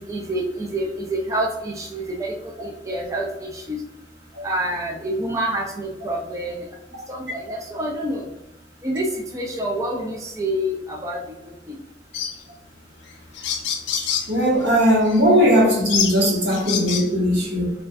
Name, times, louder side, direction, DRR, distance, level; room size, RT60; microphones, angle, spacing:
voice 1, 0.0-2.3 2.6-3.3 3.5-3.8 4.4-6.6 7.1-8.2 8.8-9.0 9.3-11.2, right 1 dB, 20° right, -2 dB, 0.5 m, -27 dB
sound 1, 12.1-12.4 13.1-13.2 13.3-14.3 15.0-15.2 15.9-17.1, left 7 dB, 90° left, 0.4 m, -26 dB
voice 2, 14.0-17.7, equal, 85° right, -3 dB, 1.3 m, -19 dB
4.2 x 2.4 x 2.4 m, 0.92 s
head